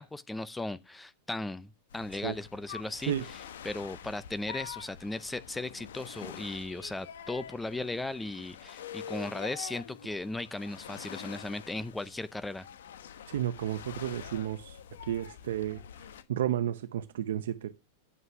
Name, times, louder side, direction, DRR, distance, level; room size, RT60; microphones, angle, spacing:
voice 1, 0.0-12.7, left 2 dB, 5° left, 0.5 m, -37 dB
sound 1, 1.9-16.2, left 8 dB, 90° left, 1.0 m, -46 dB
voice 2, 13.3-14.8 15.1-15.8 16.3-17.7, right 11 dB, 85° right, 0.8 m, -32 dB
9.7 x 5.7 x 4.8 m
supercardioid pair, 140°, 0 cm